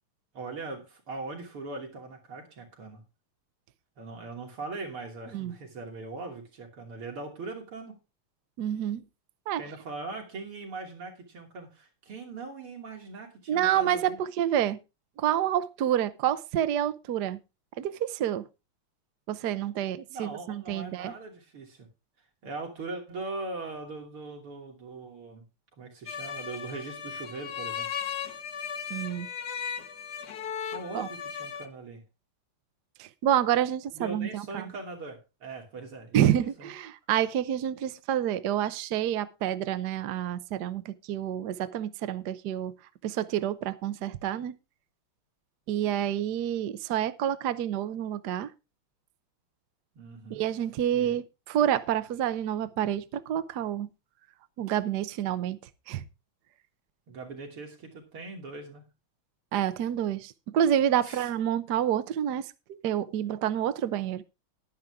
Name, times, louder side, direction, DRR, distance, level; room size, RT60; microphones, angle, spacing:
voice 1, 0.3-3.0 4.0-8.0 9.6-14.2 20.1-21.9 22.4-25.4 25.8-27.9 30.7-32.0 33.9-36.7 50.0-50.4 50.9-51.2 57.1-58.8 61.0-61.3, right 3 dB, 85° right, 3.8 m, -40 dB
voice 2, 8.6-9.0 9.5-9.6 13.5-14.8 15.2-17.4 17.8-18.4 19.3-21.1 28.9-29.3 30.9-31.1 33.0-34.6 36.1-42.7 43.0-44.6 45.7-48.5 50.3-53.9 54.6-55.6 55.9-56.0 59.5-62.5 62.8-64.2, right 10 dB, 65° right, 1.2 m, -28 dB
sound 1, 26.1-31.7, left 7 dB, 55° left, 1.5 m, -36 dB
11.5 x 10.5 x 3.6 m
omnidirectional pair, 2.3 m